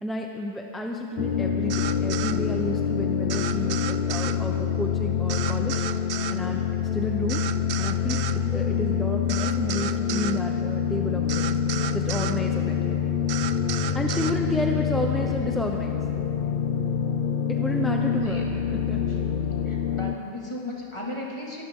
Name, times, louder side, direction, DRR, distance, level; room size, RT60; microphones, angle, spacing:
voice 1, 0.0-5.7 6.3-7.4 7.8-11.6 11.9-12.8 13.9-16.0 17.5-19.0, equal, ahead, 1 dB, 0.5 m, -31 dB
sound 1, 1.2-20.2, left 7 dB, 60° left, 0.5 m, -26 dB
sound 2, 1.7-2.4 3.3-4.4 5.3-6.4 7.3-8.4 9.3-10.4 11.3-12.4 13.3-14.4, right 10 dB, 75° right, 0.5 m, -33 dB
voice 2, 19.6-21.6, left 1 dB, 20° left, -3 dB, 2.4 m, -36 dB
22.5 x 13.5 x 3.8 m, 2.5 s
omnidirectional pair, 1.5 m